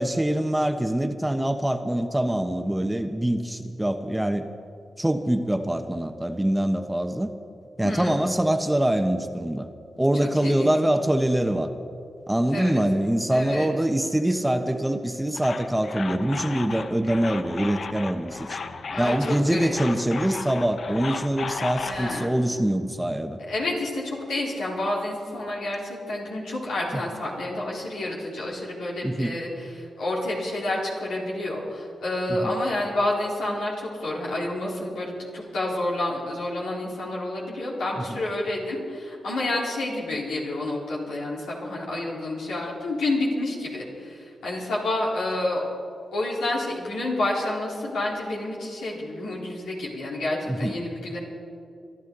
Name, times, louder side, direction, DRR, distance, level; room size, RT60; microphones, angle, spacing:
voice 1, 0.0-4.5 5.0-7.3 7.8-9.7 10.0-11.7 12.3-18.6 19.0-23.4 26.9-27.0 29.0-29.4 32.3-32.5 38.0-38.1 50.5-50.7, right 1 dB, 10° right, 7 dB, 1.1 m, -24 dB
voice 2, 7.8-8.2 9.9-10.7 12.5-12.8 13.3-13.7 18.9-19.7 21.8-22.3 23.5-45.6 46.1-51.2, left 1 dB, 85° left, -5 dB, 3.8 m, -29 dB
sound 1, 15.3-22.2, left 5 dB, 65° left, 0.7 m, -35 dB
24.5 x 12.0 x 4.0 m, 2.6 s
supercardioid pair, 40°, 0 cm